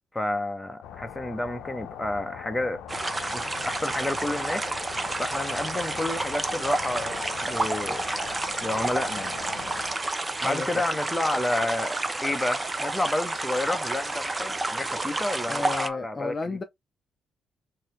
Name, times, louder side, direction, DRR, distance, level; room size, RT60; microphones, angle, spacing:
voice 1, 0.1-2.8 3.3-4.7 5.2-8.0 8.6-9.4 10.4-12.0 12.2-16.3, left 1 dB, 10° left, 0.9 m, -30 dB
sound 1, 0.8-9.9, left 10 dB, 85° left, 0.6 m, -41 dB
sound 2, 2.9-15.9, right 2 dB, 20° right, 0.6 m, -30 dB
voice 2, 10.4-10.8 15.5-16.6, left 4 dB, 30° left, 0.6 m, -33 dB
4.0 x 2.8 x 3.1 m
cardioid pair, 90°, 0 cm